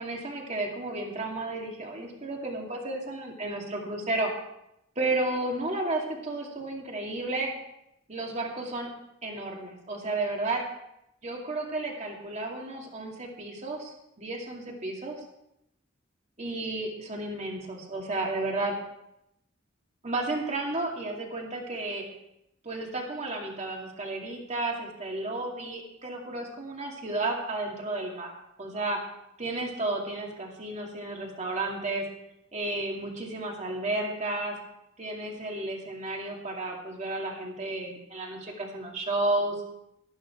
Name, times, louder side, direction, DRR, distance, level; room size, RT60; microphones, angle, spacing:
voice 1, 0.0-4.3 5.0-7.5 8.1-8.9 9.2-10.6 11.2-15.2 16.4-18.7 20.0-22.0 22.6-28.3 28.6-29.0 29.4-32.0 32.5-34.6 35.0-39.6, right 2 dB, 35° right, 0 dB, 2.4 m, -32 dB
12.5 x 12.0 x 4.5 m, 0.82 s
head